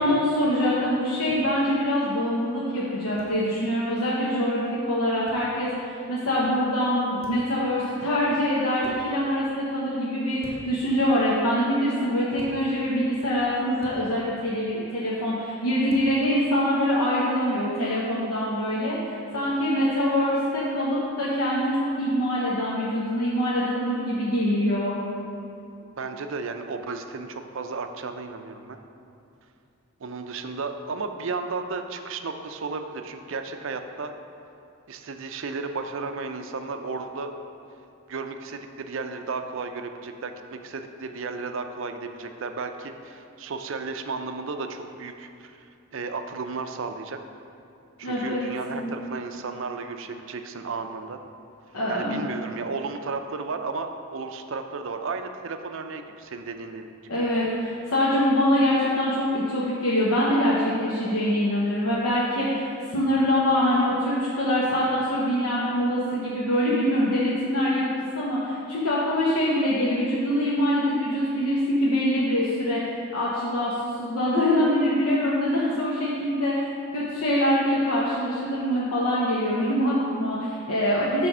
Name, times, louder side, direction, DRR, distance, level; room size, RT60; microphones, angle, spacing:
voice 1, 0.0-24.9 48.0-48.9 51.7-52.3 57.1-67.8 68.1-76.7 76.9-81.3, equal, 85° left, -6 dB, 1.0 m, -24 dB
sound 1, 1.3-1.4 3.2-3.4 5.3-5.4 7.2-7.5 8.8-9.0 10.4-10.8 12.4-12.6 13.8-14.0 15.9-16.1, equal, 25° right, 1.3 m, -47 dB
voice 2, 25.9-28.8 30.0-34.1 34.9-37.3 38.1-45.7 45.9-47.2 48.0-51.2 51.9-56.9, right 4 dB, 60° right, 6 dB, 0.5 m, -34 dB
9.1 x 3.4 x 6.1 m, 2.6 s
head